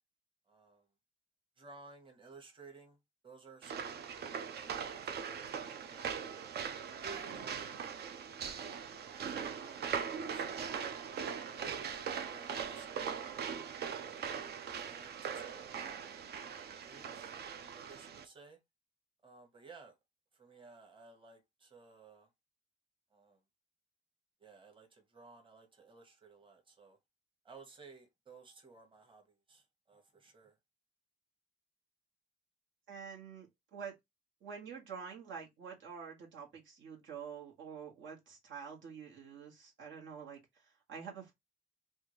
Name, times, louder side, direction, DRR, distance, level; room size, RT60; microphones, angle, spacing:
voice 1, 0.5-0.9 1.6-6.5 7.0-7.9 9.1-9.9 10.3-11.0 11.4-13.2 14.0-14.3 14.8-15.7 16.8-17.3 17.7-18.6 19.2-20.0 20.3-22.3 23.1-23.4 24.4-27.0 27.4-30.6, right 4 dB, 25° right, 1.2 m, -57 dB
sound 1, 3.6-18.2, right 7 dB, 55° right, 0.6 m, -41 dB
voice 2, 32.9-33.9 34.4-41.3, right 6 dB, 75° right, 1.5 m, -47 dB
3.5 x 2.4 x 3.1 m
cardioid pair, 90°, 20 cm